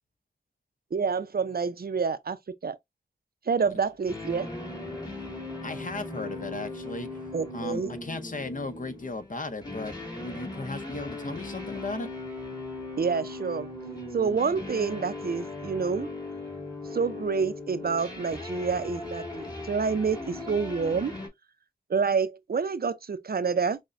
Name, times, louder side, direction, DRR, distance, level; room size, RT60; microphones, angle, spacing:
voice 1, 0.9-2.4 2.6-2.8 3.5-4.5 7.3-7.9 13.0-13.7 14.1-16.1 16.9-21.1 21.9-23.8, right 5 dB, 70° right, 0.5 m, -28 dB
sound 1, 4.1-21.3, left 2 dB, 25° left, 1.9 m, -38 dB
voice 2, 5.6-7.1 7.5-12.1, left 3 dB, 55° left, 0.7 m, -36 dB
6.1 x 2.1 x 2.6 m
wide cardioid pair, 65°, 17 cm